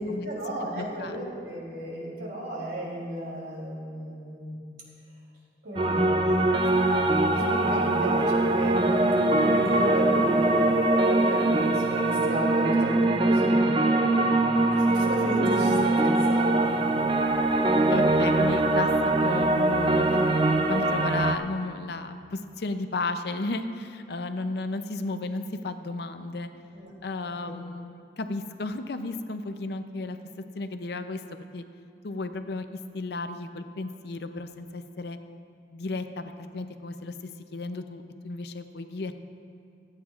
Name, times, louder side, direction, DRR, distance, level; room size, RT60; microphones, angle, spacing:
voice 1, 0.0-4.5 5.6-17.4 26.7-26.9 27.2-27.3, right 1 dB, 65° right, -4 dB, 3.1 m, -34 dB
voice 2, 0.6-1.2 17.9-26.5 27.0-30.2 30.6-31.6 32.0-35.2 35.7-37.1 37.5-39.1, left 3 dB, 60° left, 8 dB, 0.5 m, -33 dB
sound 1, 5.8-21.4, right 2 dB, 25° right, 0.4 m, -22 dB
24.0 x 8.8 x 2.4 m, 2.4 s
head